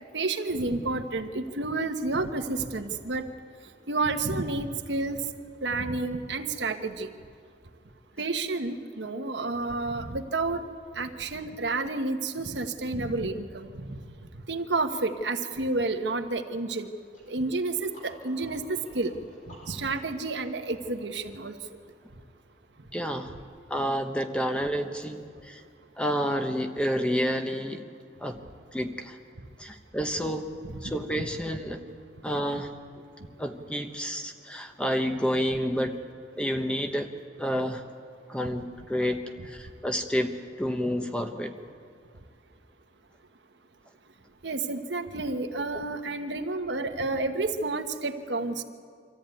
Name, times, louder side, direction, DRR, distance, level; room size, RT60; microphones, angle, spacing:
voice 1, 0.1-3.2 3.9-5.2 5.6-7.1 8.2-10.6 10.9-14.0 14.5-16.9 17.3-19.1 19.5-21.6 23.3-23.4 30.6-30.8 31.2-31.3 44.4-48.6, right 3 dB, 85° right, 6 dB, 1.3 m, -30 dB
sound 1, 17.1-22.7, equal, 45° left, 4.2 m, -55 dB
voice 2, 22.9-23.3 23.7-25.6 26.0-27.8 28.2-28.4 28.7-29.2 29.6-30.5 30.8-31.8 32.2-32.7 33.4-36.0 36.4-37.1 37.4-37.8 38.3-41.5, equal, 5° left, 5 dB, 1.1 m, -29 dB
25.0 x 14.0 x 9.2 m, 2.2 s
head